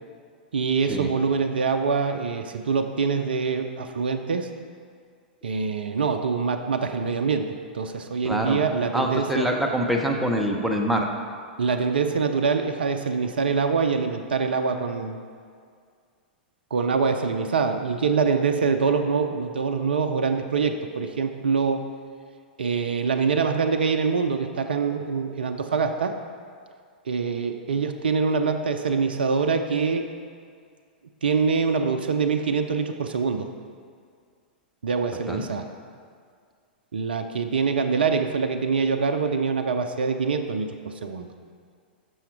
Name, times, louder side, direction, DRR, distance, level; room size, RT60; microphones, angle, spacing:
voice 1, 0.5-4.5 5.4-9.5 11.6-15.2 16.7-21.8 22.6-26.1 27.1-30.1 31.2-33.5 34.8-35.7 36.9-41.3, right 5 dB, 75° right, 6 dB, 0.4 m, -24 dB
voice 2, 8.2-8.6 8.9-11.1 35.3-35.6, equal, ahead, 0 dB, 0.8 m, -25 dB
6.3 x 5.8 x 4.5 m, 2.1 s
figure-of-eight pair, 105°, 5 cm